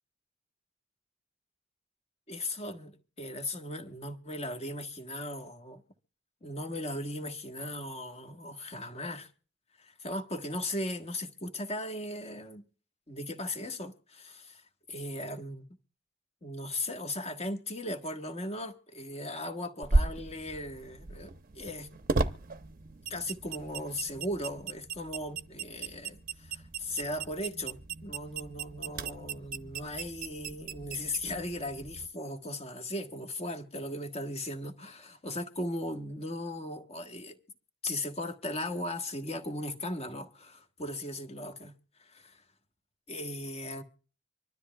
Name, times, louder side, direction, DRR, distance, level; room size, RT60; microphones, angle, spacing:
voice 1, 2.3-5.8 6.4-9.3 9.8-12.6 13.1-14.6 14.9-15.7 16.4-21.9 23.1-37.4 37.8-41.7 42.0-42.4 43.1-43.8, left 1 dB, 30° left, 1.3 m, -37 dB
sound 1, 19.8-32.1, right 3 dB, 45° right, 0.7 m, -35 dB
25.5 x 12.5 x 2.3 m
head